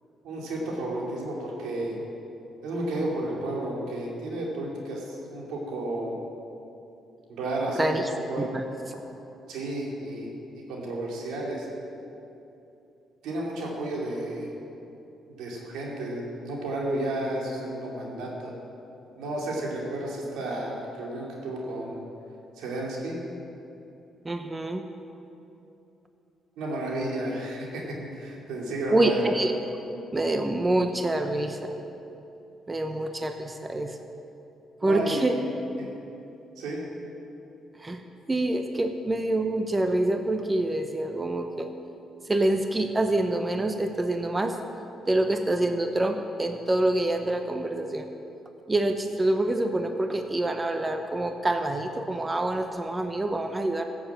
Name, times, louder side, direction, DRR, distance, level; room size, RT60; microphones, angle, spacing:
voice 1, 0.2-2.0 2.6-6.1 7.3-7.9 8.3-8.5 9.5-11.7 13.2-14.5 15.4-18.5 19.2-22.0 22.6-23.2 26.6-29.5 34.8-35.4 35.8-35.9 36.6-36.8, right 1 dB, 90° right, -2 dB, 2.8 m, -32 dB
voice 2, 7.8-8.1 8.4-8.6 24.2-24.8 28.9-29.5 30.1-31.8 32.7-34.1 34.8-35.4 37.8-38.0 38.3-41.7 42.2-44.6 45.1-48.1 48.7-53.8, right 1 dB, 20° right, 6 dB, 0.8 m, -26 dB
14.5 x 7.2 x 7.5 m, 2.9 s
cardioid pair, 90°, 0 cm